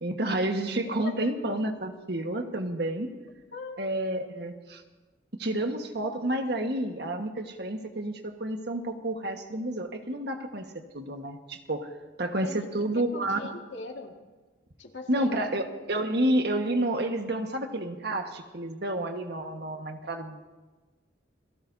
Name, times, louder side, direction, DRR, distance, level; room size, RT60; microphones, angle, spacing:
voice 1, 0.0-3.1 3.8-4.8 5.4-10.7 10.9-11.9 12.2-13.4 15.1-20.4, right 1 dB, 60° right, 5 dB, 1.5 m, -30 dB
voice 2, 0.8-1.4 3.5-3.8 12.4-12.7 12.9-14.1 14.8-15.5, left 3 dB, 80° left, 2 dB, 1.9 m, -40 dB
28.5 x 18.0 x 2.8 m, 1.3 s
head